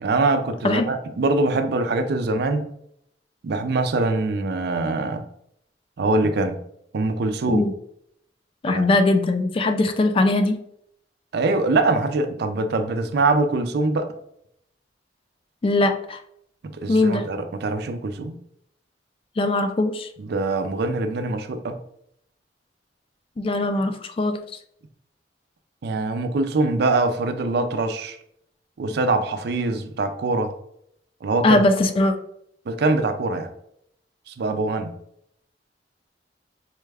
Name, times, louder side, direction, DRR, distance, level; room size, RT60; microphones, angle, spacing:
voice 1, 0.0-2.7 3.4-5.2 6.0-6.6 6.9-7.7 8.6-8.9 11.3-14.1 16.7-18.4 20.2-21.8 25.8-28.2 28.8-30.5 31.2-31.6 32.7-33.5 34.3-34.9, right 3 dB, 65° right, 0.4 m, -23 dB
voice 2, 8.6-10.6 15.6-16.2 16.9-17.3 19.4-20.1 23.4-24.4 31.4-32.1, left 2 dB, 30° left, 0.3 m, -20 dB
4.4 x 2.3 x 3.2 m
head